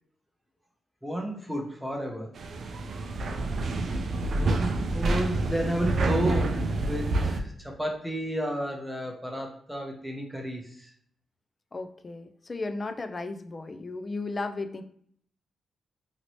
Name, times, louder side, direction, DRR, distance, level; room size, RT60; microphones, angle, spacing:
voice 1, 1.0-2.3 4.3-10.9, equal, ahead, 0 dB, 0.8 m, -32 dB
sound 1, 2.4-7.4, right 2 dB, 60° right, 0.4 m, -28 dB
voice 2, 11.7-14.8, left 3 dB, 35° left, 8 dB, 0.3 m, -35 dB
2.9 x 2.7 x 2.9 m, 0.63 s
cardioid pair, 85°, 0 cm